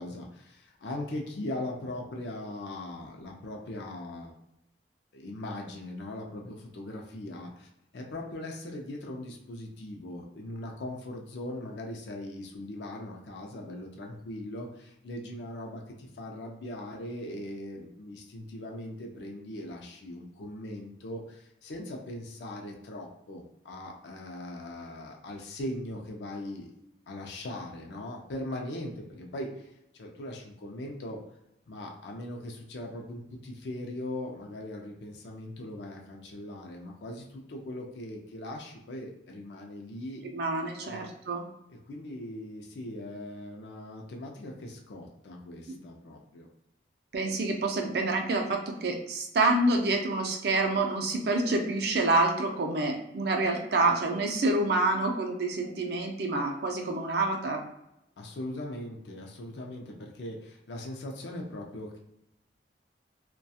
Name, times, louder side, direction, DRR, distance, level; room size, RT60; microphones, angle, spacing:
voice 1, 0.0-4.3 5.1-26.7 27.1-31.2 31.7-40.2 40.8-41.0 41.7-46.5 58.2-62.0, left 1 dB, 75° left, 1 dB, 0.4 m, -40 dB
voice 2, 40.2-41.4 45.7-45.8 47.1-57.6, right 2 dB, 60° right, 2 dB, 0.4 m, -27 dB
2.3 x 2.2 x 2.7 m, 0.84 s
head